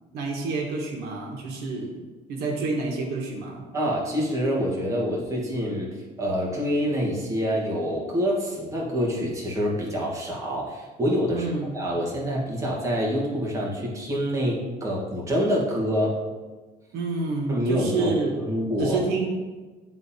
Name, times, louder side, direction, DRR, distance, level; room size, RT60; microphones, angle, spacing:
voice 1, 0.1-2.0 2.3-3.6 11.3-11.7 16.9-18.3 18.8-19.3, right 3 dB, 80° right, 0 dB, 1.3 m, -28 dB
voice 2, 3.7-5.9 6.2-11.5 11.7-16.2 17.5-19.0, equal, 20° right, -4 dB, 1.4 m, -26 dB
10.5 x 3.8 x 2.8 m, 1.3 s
cardioid pair, 145°, 16 cm